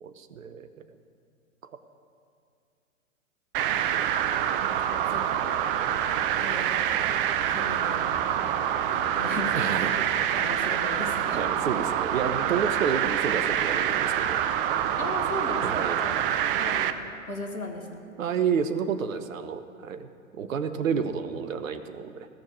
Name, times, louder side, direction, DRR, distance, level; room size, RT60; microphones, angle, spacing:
voice 1, 0.0-0.7 1.6-1.7 9.5-9.9 11.3-15.0 15.6-16.0 18.2-20.1 20.3-22.3, right 7 dB, 70° right, 10 dB, 0.9 m, -30 dB
sound 1, 3.5-16.9, right 10 dB, 40° right, 0.7 m, -26 dB
voice 2, 4.6-5.5 6.4-6.8 7.5-8.0 8.9-9.7 10.4-11.4 15.0-16.2 16.6-17.0 17.3-18.0, left 1 dB, 90° left, 2 dB, 1.9 m, -37 dB
16.5 x 6.4 x 8.6 m, 2.5 s
figure-of-eight pair, 105°, 41 cm